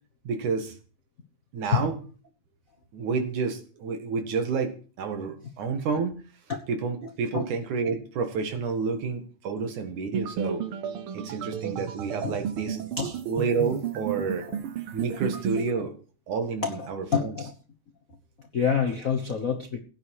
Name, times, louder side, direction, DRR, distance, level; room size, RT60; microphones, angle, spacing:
voice 1, 0.2-0.7 1.5-2.0 2.9-6.2 6.7-10.6 11.1-12.8 13.3-14.5 14.9-15.9 16.3-17.3, right 5 dB, 85° right, 3.4 m, -29 dB
sound 1, 10.1-15.7, right 8 dB, 65° right, 1.4 m, -33 dB
voice 2, 16.6-17.5 18.5-19.8, left 6 dB, 60° left, 0.9 m, -27 dB
16.5 x 9.6 x 4.8 m
omnidirectional pair, 3.4 m